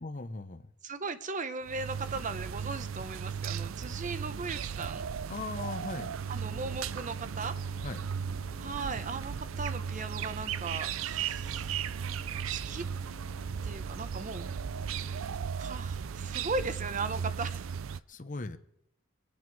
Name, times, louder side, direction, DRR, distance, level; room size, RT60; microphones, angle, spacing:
voice 1, 0.0-0.7 5.3-6.1 7.8-8.1 17.9-18.6, left 3 dB, 40° left, 11 dB, 0.8 m, -39 dB
voice 2, 0.8-5.1 6.3-7.6 8.6-11.8 12.4-12.8 13.6-14.4 15.6-17.7, right 3 dB, 40° right, 11 dB, 0.8 m, -37 dB
sound 1, 1.7-18.0, right 7 dB, 85° right, 0.5 m, -36 dB
sound 2, 6.2-15.3, left 4 dB, 60° left, 2.2 m, -55 dB
24.0 x 8.6 x 4.7 m, 0.79 s
head